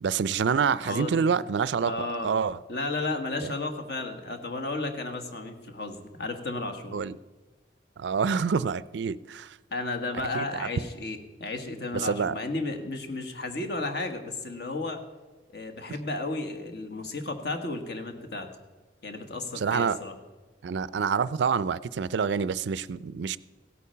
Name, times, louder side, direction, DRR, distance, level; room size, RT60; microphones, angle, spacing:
voice 1, 0.0-2.6 3.4-3.5 6.9-7.2 8.0-9.6 10.3-10.7 11.9-12.3 19.6-20.0 20.6-23.4, right 6 dB, 70° right, 18 dB, 0.4 m, -27 dB
voice 2, 0.8-1.4 1.8-2.4 2.7-7.0 9.7-15.0 15.5-18.5 19.0-20.1, left 2 dB, 60° left, 5 dB, 1.5 m, -33 dB
16.5 x 8.5 x 5.6 m, 1.3 s
head